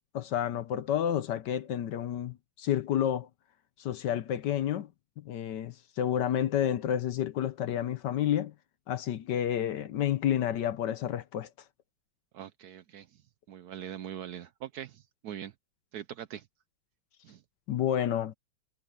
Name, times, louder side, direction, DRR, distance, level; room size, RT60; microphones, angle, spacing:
voice 1, 0.1-3.3 3.8-4.9 5.2-8.5 8.9-11.5 17.7-18.3, left 10 dB, 65° left, 1.2 m, -30 dB
voice 2, 12.3-13.2 13.5-15.5 15.9-16.5 17.2-17.4, right 10 dB, 75° right, 0.9 m, -42 dB
omnidirectional pair, 2.2 m